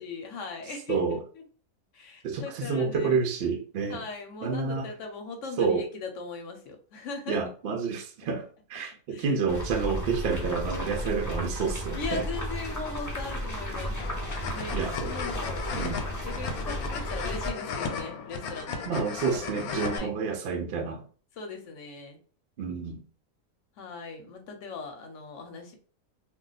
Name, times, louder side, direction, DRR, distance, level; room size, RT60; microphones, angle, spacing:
voice 1, 0.0-1.4 1.9-3.2 3.9-7.4 9.1-9.4 11.9-14.0 14.5-15.7 16.2-18.9 19.9-20.1 21.3-22.2 23.8-25.7, left 4 dB, 65° left, 0.9 m, -39 dB
voice 2, 0.9-1.2 2.2-4.0 4.4-4.9 5.6-5.9 7.3-12.2 14.7-15.1 15.7-16.0 18.9-21.0 22.6-23.0, right 5 dB, 70° right, 0.5 m, -29 dB
sound 1, 9.5-17.5, equal, 25° left, 0.4 m, -34 dB
sound 2, 14.0-20.0, left 5 dB, 90° left, 1.1 m, -35 dB
2.4 x 2.2 x 3.8 m
omnidirectional pair, 1.5 m